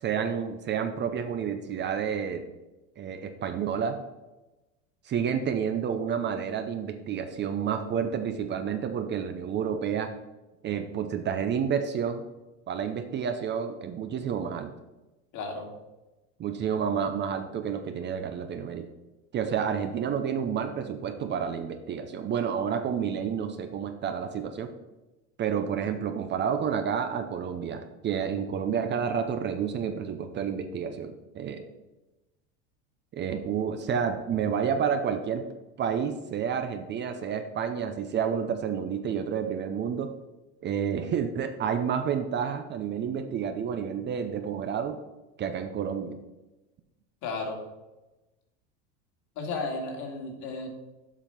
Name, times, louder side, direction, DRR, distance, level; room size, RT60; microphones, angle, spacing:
voice 1, 0.0-2.4 3.0-4.0 5.0-10.1 10.6-12.2 12.7-14.7 16.4-18.9 19.3-24.7 25.4-31.7 33.1-35.4 35.8-40.1 40.6-45.0 45.4-46.2, right 7 dB, 30° right, 8 dB, 0.7 m, -30 dB
voice 2, 15.3-15.7 47.2-47.6 49.4-50.7, left 3 dB, 55° left, 2 dB, 2.3 m, -33 dB
7.4 x 5.0 x 5.8 m, 1.1 s
supercardioid pair, 120°, 35 cm